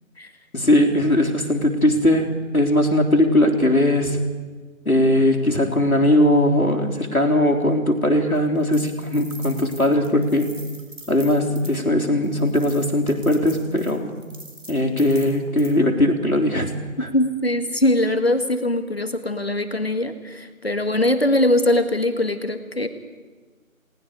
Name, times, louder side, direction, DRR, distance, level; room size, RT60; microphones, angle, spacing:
voice 1, 0.5-4.2 4.9-10.5 11.1-14.1 14.7-17.1, left 1 dB, 85° left, 3 dB, 3.6 m, -19 dB
sound 1, 8.3-11.8 12.2-15.7, right 1 dB, 60° right, 4.1 m, -43 dB
voice 2, 17.1-22.9, left 1 dB, 45° left, 8 dB, 1.6 m, -21 dB
29.0 x 19.0 x 5.0 m, 1.3 s
figure-of-eight pair, 175°, 42 cm